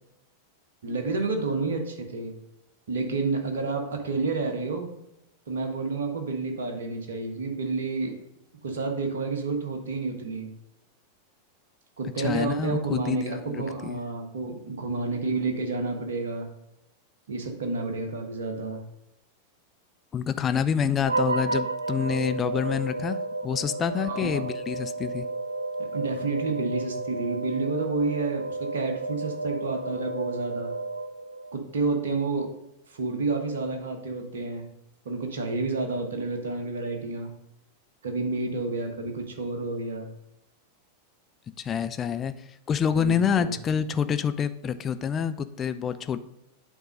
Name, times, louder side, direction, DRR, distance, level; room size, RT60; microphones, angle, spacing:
voice 1, 0.8-2.3 2.9-4.9 5.5-8.1 8.6-10.5 12.0-16.5 17.3-18.8 24.0-24.4 25.8-30.7 31.5-32.5 32.9-34.7 35.0-37.3 38.0-40.1 43.0-43.5, right 3 dB, 65° right, 4 dB, 1.3 m, -30 dB
voice 2, 12.0-14.1 20.1-23.2 23.4-25.3 41.6-46.2, left 7 dB, 25° left, 11 dB, 0.4 m, -27 dB
sound 1, 21.0-31.6, right 3 dB, 80° right, 0.3 m, -32 dB
8.7 x 3.7 x 5.3 m, 0.85 s
figure-of-eight pair, 90°, 0 cm